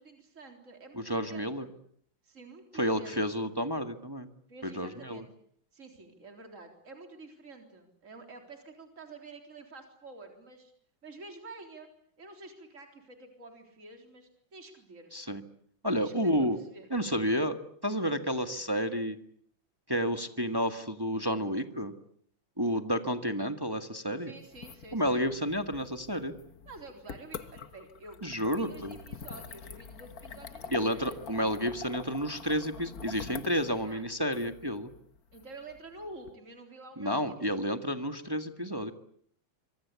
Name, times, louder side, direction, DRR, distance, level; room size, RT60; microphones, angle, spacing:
voice 1, 0.0-1.7 2.2-3.3 4.5-5.3 5.7-10.7 11.0-11.9 12.2-15.1 16.0-16.9 18.4-18.5 24.2-25.3 26.7-31.5 33.8-34.0 35.3-37.7, right 2 dB, 40° right, 4 dB, 4.2 m, -49 dB
voice 2, 1.0-1.6 2.8-4.3 4.6-5.2 15.1-15.4 15.8-16.6 16.9-19.2 19.9-21.9 22.6-24.3 24.9-26.3 28.2-28.9 30.7-34.9 37.0-38.9, equal, 10° right, 7 dB, 1.6 m, -30 dB
sound 1, 24.4-36.3, left 6 dB, 50° left, 1.7 m, -46 dB
26.0 x 24.0 x 8.4 m, 0.65 s
omnidirectional pair, 2.2 m